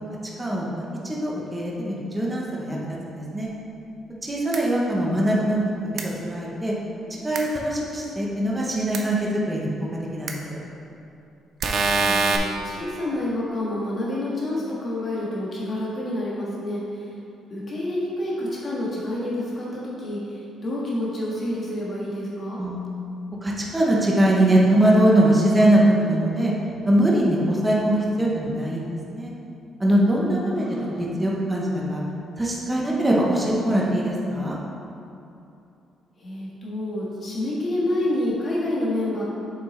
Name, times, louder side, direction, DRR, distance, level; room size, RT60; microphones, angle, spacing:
voice 1, 0.4-3.5 4.2-5.6 6.2-6.7 7.1-9.9 10.1-10.6 22.6-22.8 23.4-26.5 26.9-29.3 29.8-32.0 32.4-34.6, right 1 dB, 10° right, -4 dB, 0.8 m, -22 dB
sound 1, 4.5-4.6 6.0-6.1 7.3-7.4 8.9-9.0 10.3-10.4 11.6-12.4, right 4 dB, 45° right, 0.6 m, -22 dB
voice 2, 4.7-5.3 11.9-17.1 17.5-22.6 30.6-30.9 36.2-39.2, left 1 dB, 30° left, -6 dB, 1.5 m, -28 dB
7.3 x 5.8 x 3.2 m, 2.7 s
cardioid pair, 170°, 0 cm